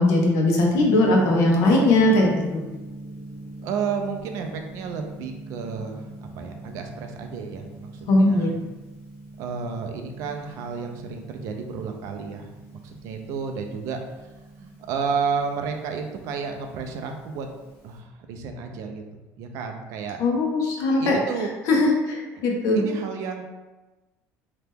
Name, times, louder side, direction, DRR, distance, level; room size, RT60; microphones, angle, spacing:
voice 1, 0.0-2.6 8.1-8.5 20.2-21.2 21.7-22.8, left 2 dB, 60° left, 0 dB, 0.6 m, -19 dB
Gong, 0.7-18.0, right 1 dB, 75° left, 1.2 m, -42 dB
voice 2, 3.6-6.0 6.4-8.5 9.4-14.0 14.6-17.5 17.8-19.0 19.4-20.2 21.0-21.5 22.3-22.4 22.7-23.4, right 5 dB, 55° right, 4 dB, 0.4 m, -31 dB
2.8 x 2.2 x 3.4 m, 1.1 s
cardioid pair, 175°, 6 cm